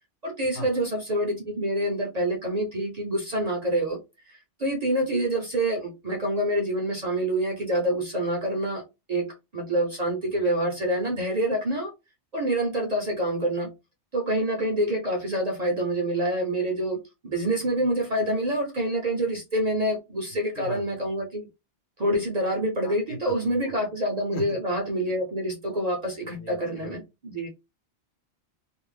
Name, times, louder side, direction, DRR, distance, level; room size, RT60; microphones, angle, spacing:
voice 1, 0.2-4.0 4.3-11.9 12.3-13.7 14.1-21.5 22.0-27.5, right 1 dB, 50° right, 0.5 m, -27 dB
voice 2, 22.8-23.3 23.6-23.7 24.3-24.4 26.2-27.0, left 1 dB, 70° left, 1.0 m, -37 dB
2.5 x 2.0 x 3.2 m
omnidirectional pair, 1.2 m